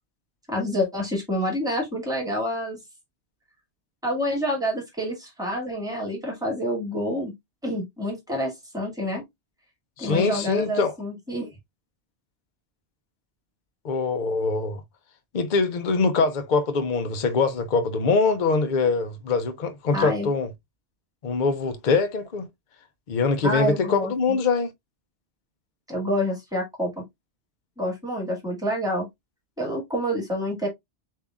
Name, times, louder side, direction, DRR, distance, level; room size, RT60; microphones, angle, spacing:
voice 1, 0.5-2.8 4.0-7.3 7.6-9.2 10.0-11.5 19.9-20.3 23.4-24.1 25.9-27.0 27.8-29.1 29.6-30.7, equal, 5° right, 2.1 m, -28 dB
voice 2, 10.0-10.9 13.8-14.8 15.3-20.5 21.2-22.5 23.1-24.7, left 4 dB, 50° left, 0.7 m, -23 dB
6.9 x 2.8 x 2.4 m
omnidirectional pair, 1.2 m